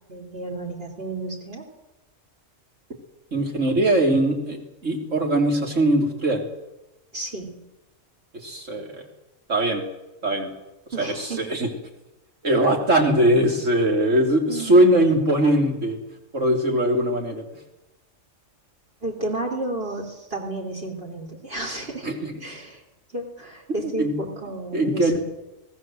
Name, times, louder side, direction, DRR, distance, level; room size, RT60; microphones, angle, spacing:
voice 1, 0.1-1.7 7.1-7.5 10.9-11.4 14.5-14.8 19.0-22.1 22.4-22.8 23.1-25.2, right 2 dB, 45° right, 0 dB, 3.6 m, -32 dB
voice 2, 3.3-6.5 8.3-9.1 9.5-9.9 10.2-10.5 11.0-11.7 12.4-16.0 16.3-17.4 22.0-22.4 24.0-24.1 24.7-25.2, right 1 dB, 70° right, 2 dB, 3.7 m, -21 dB
26.5 x 18.0 x 7.6 m, 0.99 s
omnidirectional pair, 1.3 m